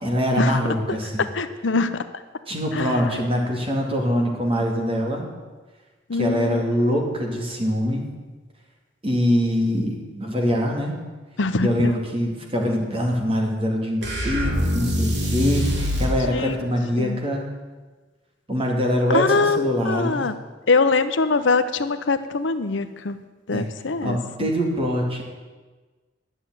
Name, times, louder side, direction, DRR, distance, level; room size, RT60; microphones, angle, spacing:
voice 1, 0.0-1.3 2.5-5.3 6.1-8.0 9.0-11.0 11.6-17.5 18.5-20.2 23.5-23.7 24.0-25.2, equal, 30° right, 0 dB, 2.5 m, -23 dB
voice 2, 1.4-1.9 2.7-3.1 6.1-6.6 11.4-11.9 16.3-16.6 17.0-17.2 19.1-20.3 20.7-23.2 23.5-24.2, left 4 dB, 80° left, 10 dB, 0.8 m, -23 dB
sound 1, 14.0-16.2, equal, 65° right, 2.6 m, -23 dB
11.0 x 7.7 x 9.3 m, 1.3 s
head